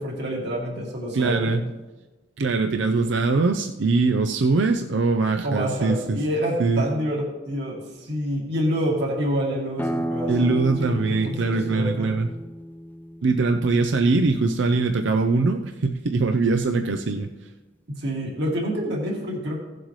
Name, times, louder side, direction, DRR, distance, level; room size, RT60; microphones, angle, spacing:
voice 1, 0.0-1.5 5.4-12.1 17.9-19.6, equal, 65° right, -2 dB, 2.4 m, -27 dB
voice 2, 1.1-1.7 2.4-6.2 6.6-6.8 10.3-12.3 13.2-17.5, right 3 dB, 80° right, 6 dB, 0.5 m, -22 dB
sound 1, 9.8-15.2, equal, 10° left, 0.4 m, -33 dB
17.0 x 7.7 x 3.2 m, 1.2 s
head